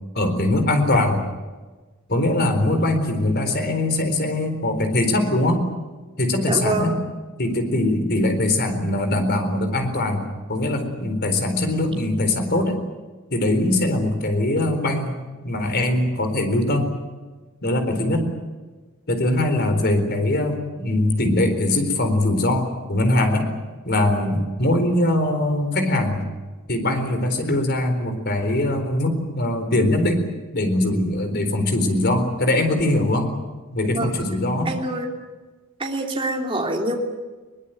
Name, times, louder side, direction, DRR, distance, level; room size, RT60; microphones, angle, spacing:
voice 1, 0.1-1.2 2.1-5.6 6.2-7.0 7.4-12.8 13.3-15.1 15.4-16.9 17.6-18.3 19.1-23.5 23.9-26.2 26.7-30.2 30.5-33.3 33.7-34.7, left 1 dB, 50° left, 7 dB, 4.2 m, -21 dB
voice 2, 6.5-6.9 33.9-34.1 34.6-35.1 35.8-37.0, right 2 dB, 25° right, 1 dB, 3.1 m, -25 dB
22.5 x 20.5 x 9.3 m, 1.3 s
head